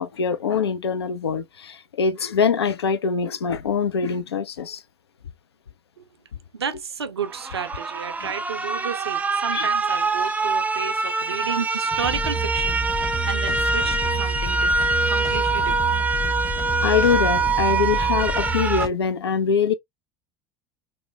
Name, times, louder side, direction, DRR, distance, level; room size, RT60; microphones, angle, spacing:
voice 1, 0.0-4.8 8.2-8.3 9.5-9.7 16.8-19.7, left 6 dB, 85° left, 0.4 m, -23 dB
voice 2, 6.6-12.8 13.3-14.7 15.1-15.7, right 6 dB, 90° right, 0.4 m, -31 dB
sound 1, 7.3-18.9, right 3 dB, 10° right, 0.4 m, -24 dB
sound 2, 11.8-18.9, right 1 dB, 30° left, 1.0 m, -29 dB
3.1 x 2.1 x 2.7 m
hypercardioid pair, 75°, 13 cm